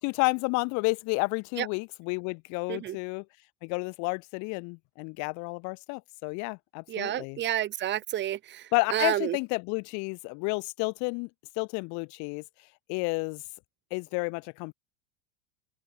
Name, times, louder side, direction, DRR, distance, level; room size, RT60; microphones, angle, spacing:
voice 1, 0.0-3.2 3.6-7.4 8.7-11.3 11.6-12.4 12.9-13.4 13.9-14.7, left 33 dB, 55° left, 2.6 m, -31 dB
voice 2, 6.9-9.4, right 12 dB, 30° right, 2.0 m, -30 dB
open air
supercardioid pair, 140°, 35 cm